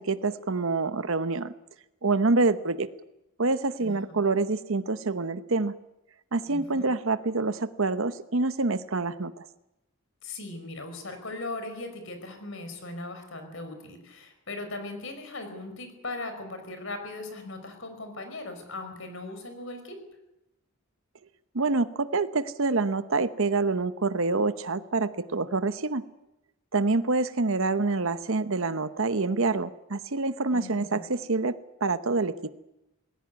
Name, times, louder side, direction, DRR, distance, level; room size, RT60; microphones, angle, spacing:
voice 1, 0.0-1.5 2.0-2.9 3.4-5.7 6.3-9.5 21.5-26.0 26.7-31.6 31.8-32.5, right 3 dB, 65° right, 12 dB, 0.9 m, -26 dB
voice 2, 3.8-4.2 6.5-6.9 10.2-20.0 30.5-31.0, left 2 dB, 60° left, 7 dB, 5.2 m, -39 dB
20.0 x 17.0 x 9.5 m, 0.90 s
head